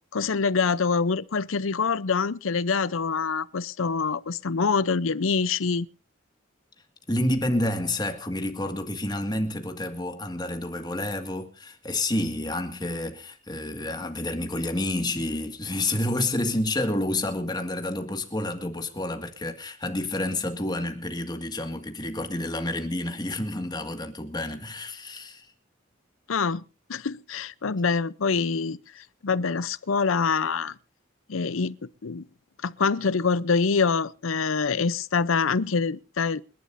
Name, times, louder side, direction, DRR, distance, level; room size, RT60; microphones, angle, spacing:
voice 1, 0.1-5.9 26.3-26.6 26.9-30.7 31.3-31.8 32.0-32.2 32.6-36.4, left 5 dB, 90° left, 0.7 m, -25 dB
voice 2, 7.1-25.5, left 1 dB, 20° left, 1.9 m, -29 dB
28.0 x 11.5 x 2.6 m
head